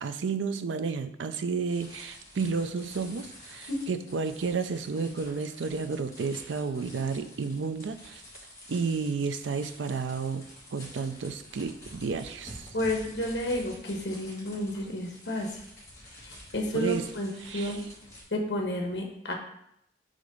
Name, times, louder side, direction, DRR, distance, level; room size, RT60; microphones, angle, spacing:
voice 1, 0.0-8.2 8.7-12.7 16.7-17.1 17.4-17.8, right 5 dB, 85° right, 10 dB, 0.5 m, -32 dB
sound 1, 1.7-18.2, left 1 dB, 20° left, 1.8 m, -49 dB
voice 2, 12.7-15.5 16.2-17.8 18.3-19.3, left 1 dB, 65° left, 2 dB, 1.2 m, -31 dB
5.0 x 3.8 x 5.3 m, 0.75 s
head